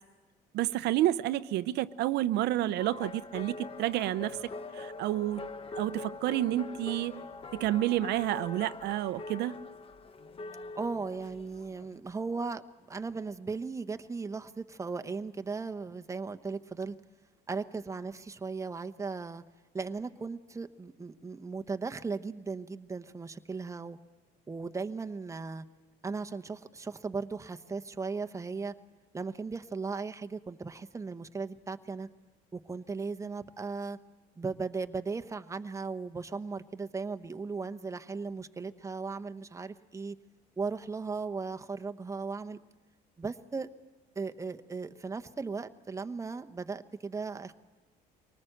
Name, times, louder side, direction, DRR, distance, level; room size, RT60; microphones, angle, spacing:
voice 1, 0.5-4.4 4.7-5.5 5.8-7.2 7.5-9.6, right 14 dB, 80° right, 13 dB, 0.6 m, -30 dB
sound 1, 2.8-11.9, left 3 dB, 35° left, 0.9 m, -43 dB
voice 2, 10.8-12.6 12.9-17.0 17.5-19.4 19.7-24.0 24.5-25.6 26.0-28.7 29.1-32.1 32.5-34.0 34.4-40.2 40.6-42.6 43.2-43.7 44.1-47.5, right 4 dB, 15° right, 7 dB, 0.9 m, -37 dB
24.0 x 19.0 x 7.8 m, 1.3 s
cardioid pair, 110°, 17 cm